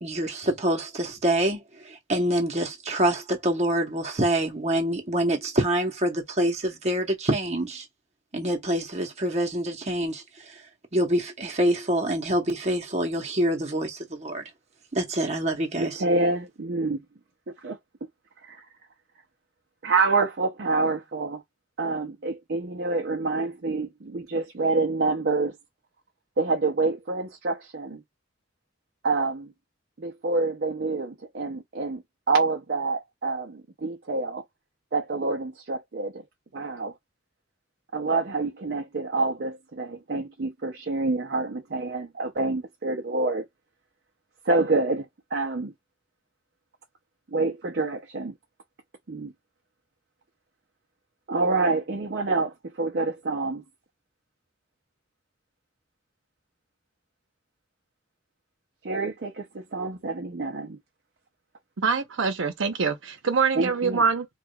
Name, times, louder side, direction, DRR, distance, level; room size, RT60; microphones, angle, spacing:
voice 1, 0.0-7.8 8.3-10.2 10.9-14.4 14.9-16.0, right 1 dB, 35° right, 1.0 m, -26 dB
voice 2, 15.8-17.0 17.6-17.8 18.5-18.6 19.8-21.4 21.8-25.6 26.4-28.0 29.0-29.5 30.0-32.0 32.3-34.4 34.9-36.2 36.5-36.9 37.9-43.4 44.4-45.1 45.3-45.7 47.3-48.3 49.1-49.3 51.3-53.6 58.8-60.8 63.5-64.0, right 3 dB, 55° right, 0.6 m, -27 dB
voice 3, 61.8-64.3, right 5 dB, 85° right, 0.9 m, -24 dB
4.7 x 2.4 x 2.3 m
head